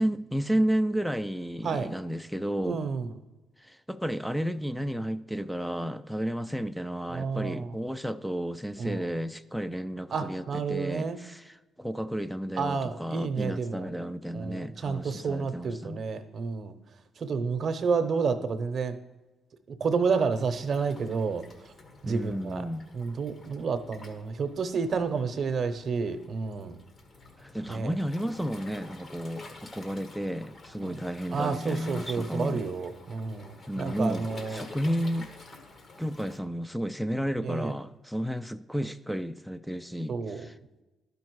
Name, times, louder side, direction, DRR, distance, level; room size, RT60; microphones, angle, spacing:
voice 1, 0.0-2.8 3.7-16.0 22.1-22.8 27.4-32.6 33.7-35.3 36.0-40.5, equal, ahead, 0.4 m, -32 dB
voice 2, 2.6-3.1 7.1-7.8 8.8-9.1 10.1-11.2 12.6-13.9 14.3-16.7 17.2-19.0 19.8-21.4 22.0-22.6 22.9-26.8 27.7-27.9 30.8-31.0 31.3-34.6 37.4-37.7 40.1-40.5, right 5 dB, 50° right, 0.8 m, -30 dB
Waves surf, 20.3-36.4, left 2 dB, 45° left, 1.3 m, -49 dB
11.5 x 5.3 x 4.7 m
cardioid pair, 90°, 0 cm